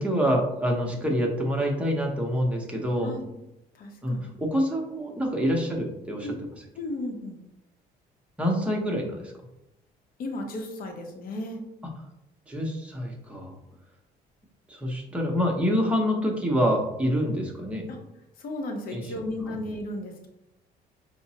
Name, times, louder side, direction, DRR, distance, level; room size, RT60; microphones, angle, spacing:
voice 1, 0.0-3.1 4.0-6.3 8.4-9.3 12.5-13.6 14.7-17.9 18.9-19.1 19.5-19.6, equal, 5° right, 0 dB, 0.8 m, -26 dB
voice 2, 3.7-4.3 6.2-6.4 6.8-7.4 10.2-11.6 17.9-18.0 18.4-20.3, left 1 dB, 60° left, 3 dB, 0.7 m, -35 dB
5.0 x 2.0 x 2.7 m, 0.88 s
cardioid pair, 110°, 17 cm